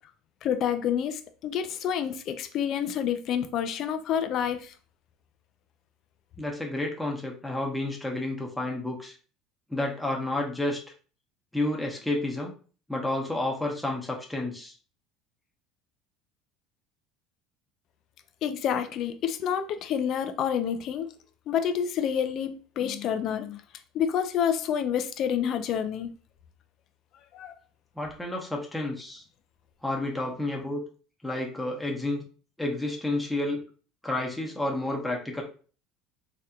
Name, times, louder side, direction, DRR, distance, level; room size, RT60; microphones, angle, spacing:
voice 1, 0.4-4.7 18.4-21.1 21.5-23.6 23.9-26.1 27.3-27.5, left 8 dB, 55° left, 0.5 m, -28 dB
voice 2, 6.4-9.1 9.7-10.8 11.5-12.5 12.9-14.7 28.0-29.2 29.8-30.8 31.2-32.2 32.6-33.6 34.0-35.4, left 2 dB, 5° left, 0.9 m, -30 dB
3.3 x 2.8 x 2.4 m
supercardioid pair, 90°, 0 cm